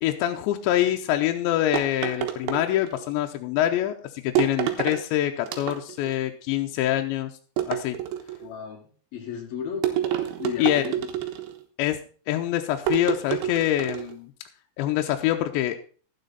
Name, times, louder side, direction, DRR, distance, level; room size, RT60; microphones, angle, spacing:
voice 1, 0.0-7.3 7.7-8.0 10.6-10.9 11.8-12.0 12.3-14.3 14.8-15.8, left 13 dB, 85° left, 4 dB, 3.0 m, -25 dB
sound 1, 1.7-3.1 4.4-5.0 5.5-6.1 7.6-8.5 9.8-11.6 12.9-14.1, right 11 dB, 80° right, 3.5 m, -28 dB
voice 2, 8.4-8.8 9.1-11.1, left 7 dB, 60° left, 1 dB, 3.6 m, -35 dB
12.0 x 9.3 x 4.0 m, 0.41 s
omnidirectional pair, 5.2 m